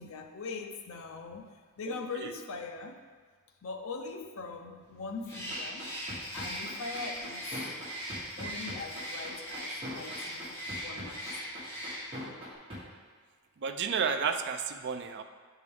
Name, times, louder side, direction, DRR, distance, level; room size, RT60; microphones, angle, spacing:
voice 1, 0.0-3.1 3.6-6.0 6.3-7.6 8.4-11.4, left 4 dB, 65° left, 4 dB, 0.6 m, -41 dB
Bird, 5.2-12.3, equal, 15° left, 1.6 m, -40 dB
sound 1, 5.3-12.8, equal, 25° right, 1.5 m, -41 dB
Glass, 5.7-10.7, left 2 dB, 90° left, 1.4 m, -52 dB
voice 2, 13.6-15.2, right 6 dB, 50° right, 7 dB, 0.4 m, -31 dB
9.2 x 3.7 x 3.4 m, 1.5 s
head